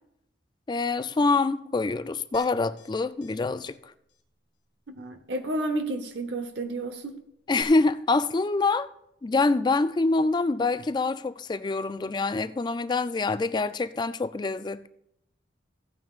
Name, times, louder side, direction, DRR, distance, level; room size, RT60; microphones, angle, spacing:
voice 1, 0.7-3.8 7.5-8.9 9.2-14.9, left 3 dB, 25° left, 0.3 m, -25 dB
sound 1, 2.3-2.9 3.2-3.3 3.6-3.8 4.1-4.2 7.6-7.7, left 3 dB, 75° left, 0.9 m, -46 dB
voice 2, 4.9-7.2, right 2 dB, 70° right, 0.9 m, -31 dB
15.5 x 9.2 x 2.4 m
head